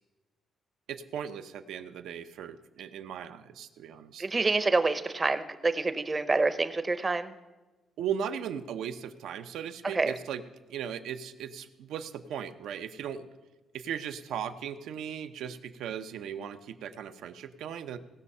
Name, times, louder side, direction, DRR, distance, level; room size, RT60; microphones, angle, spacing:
voice 1, 0.9-4.3 8.0-10.4 10.7-13.3 13.7-18.0, right 8 dB, 85° right, 9 dB, 0.7 m, -37 dB
voice 2, 4.2-7.3 9.9-10.2, right 3 dB, 20° right, 11 dB, 0.6 m, -27 dB
18.0 x 6.4 x 5.5 m, 1.2 s
cardioid pair, 150°, 0 cm